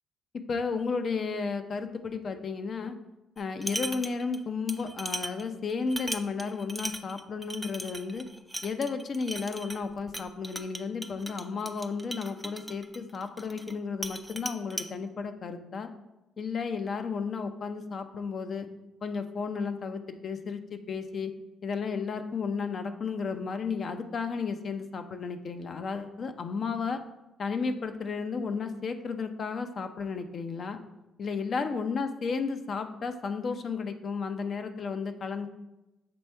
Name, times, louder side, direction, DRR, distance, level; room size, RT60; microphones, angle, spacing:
voice 1, 0.5-3.0 3.4-8.3 8.6-15.9 16.4-18.7 19.0-21.3 21.6-27.0 27.4-30.8 31.2-35.5, left 5 dB, 50° left, 8 dB, 0.6 m, -33 dB
sound 1, 3.4-4.4 4.7-13.8 14.0-14.9, right 1 dB, 5° right, 0.4 m, -38 dB
6.9 x 3.3 x 4.5 m, 0.98 s
cardioid pair, 80°, 0 cm